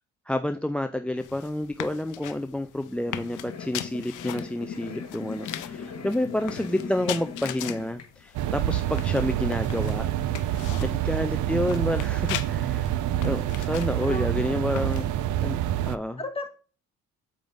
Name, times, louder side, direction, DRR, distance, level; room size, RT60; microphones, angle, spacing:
voice 1, 0.3-10.1 10.8-12.9 13.2-15.1 15.4-15.6 15.8-16.2, left 1 dB, 5° left, 10 dB, 0.3 m, -29 dB
sound 1, 1.2-15.3, left 12 dB, 85° left, 0.6 m, -40 dB
sound 2, 2.9-8.1, left 6 dB, 60° left, 1.5 m, -39 dB
sound 3, 8.3-16.0, right 12 dB, 75° right, 0.5 m, -27 dB
voice 2, 10.6-11.1 14.0-14.3 16.2-16.5, left 2 dB, 20° left, 4 dB, 1.7 m, -36 dB
7.8 x 5.0 x 3.5 m, 0.37 s
cardioid pair, 90°, 30 cm